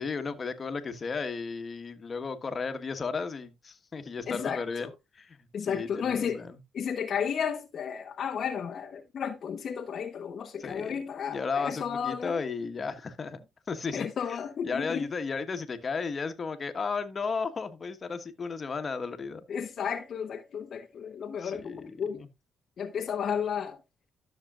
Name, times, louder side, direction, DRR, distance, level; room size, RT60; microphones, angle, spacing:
voice 1, 0.0-6.6 10.6-14.4 14.6-19.4 21.2-22.3, left 5 dB, 40° left, 1.3 m, -34 dB
voice 2, 4.3-4.6 5.5-6.4 6.7-12.4 13.9-15.1 19.5-22.2 22.8-23.8, left 7 dB, 60° left, 0.9 m, -33 dB
13.0 x 6.6 x 2.4 m
cardioid pair, 80°, 0 cm